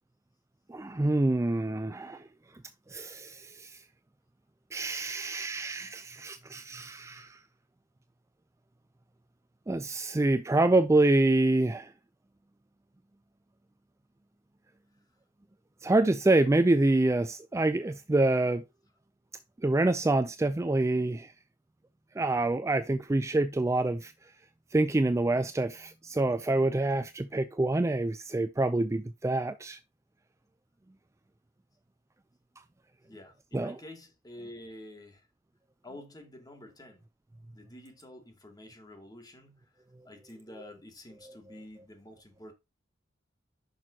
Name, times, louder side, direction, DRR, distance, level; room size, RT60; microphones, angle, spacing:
voice 1, 0.7-2.2 2.9-3.8 4.7-7.4 9.7-11.9 15.8-18.6 19.6-21.3 22.2-24.1 24.7-29.8 33.5-33.8, right 2 dB, 15° right, 0.4 m, -26 dB
voice 2, 33.0-35.3 35.8-37.0 37.5-42.5, left 1 dB, 20° left, 2.5 m, -49 dB
10.5 x 6.3 x 2.8 m
head